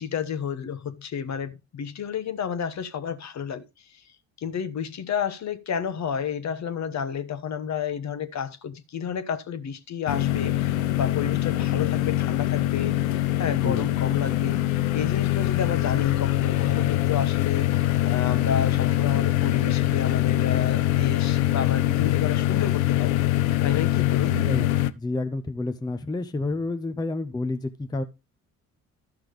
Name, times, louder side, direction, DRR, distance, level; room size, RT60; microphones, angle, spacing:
voice 1, 0.0-3.6 4.4-13.0 13.4-14.6 14.9-17.7 18.1-23.1 23.6-24.4, left 7 dB, 40° left, 1.0 m, -31 dB
sound 1, 10.1-24.9, left 14 dB, 80° left, 0.6 m, -23 dB
voice 2, 24.2-24.7 25.0-28.0, left 2 dB, 10° left, 0.6 m, -29 dB
12.5 x 5.9 x 3.3 m
hypercardioid pair, 50°, 41 cm